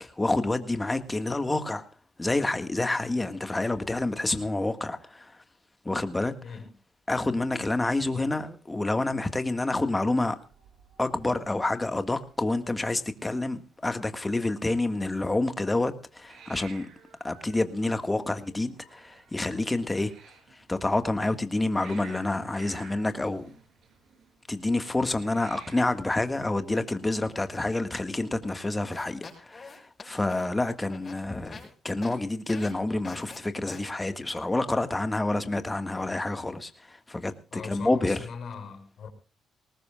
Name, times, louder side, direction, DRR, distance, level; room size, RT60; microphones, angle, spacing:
voice 1, 0.0-1.8 2.2-5.3 5.8-6.3 7.1-10.4 11.0-16.9 17.2-20.1 20.7-23.5 24.5-31.6 31.8-36.7 37.1-38.2, left 2 dB, 15° left, 1.7 m, -28 dB
Hiss, 9.9-27.3, right 6 dB, 75° right, 4.8 m, -54 dB
sound 1, 28.8-31.7 32.0-32.2 32.5-32.7 33.0-33.4 33.7-33.8, left 4 dB, 35° left, 6.9 m, -44 dB
voice 2, 37.5-39.1, left 6 dB, 60° left, 5.7 m, -40 dB
20.0 x 19.0 x 2.4 m
cardioid pair, 90°, 0 cm